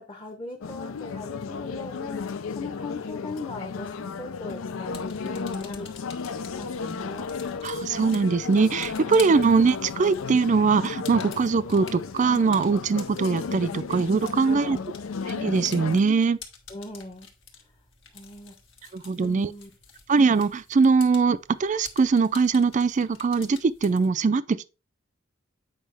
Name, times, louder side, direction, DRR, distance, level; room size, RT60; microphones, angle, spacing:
voice 1, 0.0-5.9 6.6-7.3 14.4-14.9 16.7-17.3 18.1-18.5 19.2-19.7, left 2 dB, 25° left, 0.9 m, -39 dB
sound 1, 0.6-16.0, left 5 dB, 85° left, 0.5 m, -34 dB
sound 2, 4.7-24.1, left 6 dB, 65° left, 1.5 m, -48 dB
voice 2, 7.6-14.8 15.3-16.4 18.9-19.5 20.1-24.7, right 4 dB, 35° right, 0.4 m, -22 dB
8.2 x 5.1 x 3.4 m
head